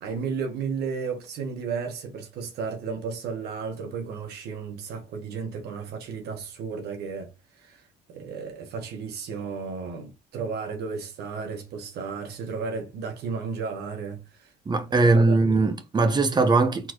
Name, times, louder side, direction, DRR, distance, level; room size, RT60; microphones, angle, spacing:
voice 1, 0.0-7.3 7.5-7.8 8.1-14.5 15.0-15.6, right 5 dB, 75° right, 1.5 m, -33 dB
voice 2, 14.7-16.9, right 3 dB, 25° right, 1.0 m, -20 dB
4.4 x 3.9 x 3.1 m
cardioid pair, 110°, 17 cm